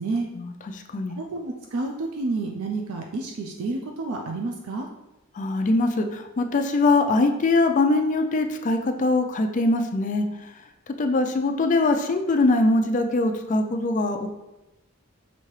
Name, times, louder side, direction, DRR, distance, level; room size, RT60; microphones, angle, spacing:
voice 1, 0.3-1.2 5.4-10.3 11.0-14.3, left 2 dB, 35° left, 6 dB, 0.3 m, -22 dB
voice 2, 1.2-4.9, right 3 dB, 80° right, 1 dB, 0.5 m, -29 dB
5.9 x 2.8 x 3.1 m, 0.97 s
head